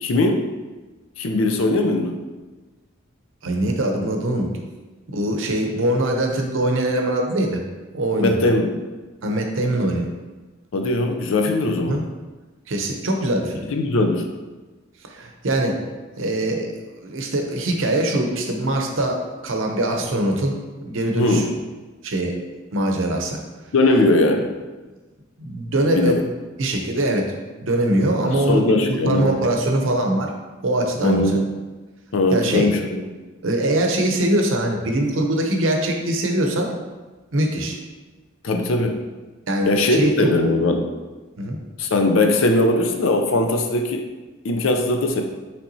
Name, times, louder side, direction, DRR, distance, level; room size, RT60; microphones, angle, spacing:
voice 1, 0.0-0.4 1.2-2.2 8.2-8.7 10.7-12.0 13.6-14.2 21.1-21.5 23.7-24.5 25.9-26.2 28.2-29.3 31.0-31.5 32.1-33.0 38.4-38.9 39.7-40.9 41.8-44.0 44.4-45.2, left 2 dB, 70° left, 4 dB, 0.5 m, -20 dB
voice 2, 3.4-4.6 5.1-7.6 7.9-8.4 9.2-10.1 11.9-12.1 12.7-13.6 15.1-15.8 16.2-16.7 17.0-21.4 22.0-22.3 22.7-23.4 25.4-26.2 26.6-27.3 27.6-30.3 30.6-31.4 32.3-32.7 33.4-36.7 37.3-37.8 39.5-40.3 41.4-41.6, right 1 dB, 65° right, 2 dB, 0.7 m, -22 dB
5.7 x 3.3 x 2.7 m, 1.3 s
head